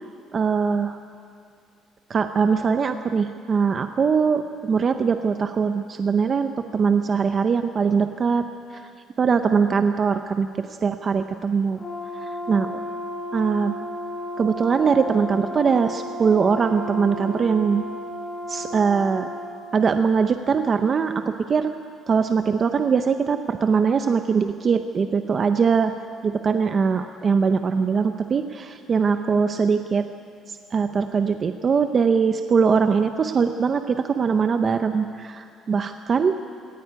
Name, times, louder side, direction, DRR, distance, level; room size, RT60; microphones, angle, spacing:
voice 1, 0.3-1.0 2.1-8.5 8.7-8.8 9.2-11.8 12.1-12.7 13.3-13.8 14.4-17.8 18.5-19.3 19.7-21.7 22.1-25.9 26.2-30.0 30.5-36.3, right 5 dB, 30° right, 8 dB, 0.6 m, -21 dB
Brass instrument, 11.8-19.5, left 1 dB, 20° left, 4.8 m, -33 dB
18.0 x 17.5 x 9.7 m, 2.3 s
cardioid pair, 165°, 0 cm